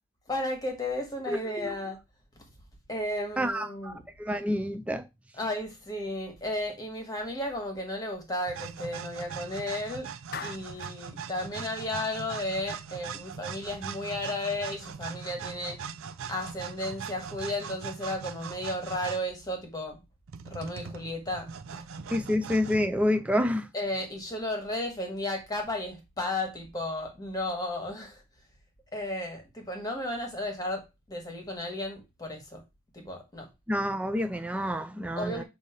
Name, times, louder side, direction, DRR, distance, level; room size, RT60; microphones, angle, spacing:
voice 1, 0.3-2.0 2.9-4.0 5.4-10.1 10.4-15.8 16.3-20.0 20.4-21.8 23.7-28.2 28.9-32.6 32.9-33.5 35.2-35.4, left 1 dB, 15° left, 1.5 m, -34 dB
voice 2, 1.3-1.8 3.4-5.1 22.1-23.7 33.7-35.4, left 1 dB, 5° right, 0.3 m, -28 dB
sound 1, 8.5-19.3 20.3-22.9, right 6 dB, 70° right, 0.5 m, -40 dB
Clapping, 10.3-11.0, left 6 dB, 45° left, 0.5 m, -40 dB
7.3 x 2.7 x 4.9 m
head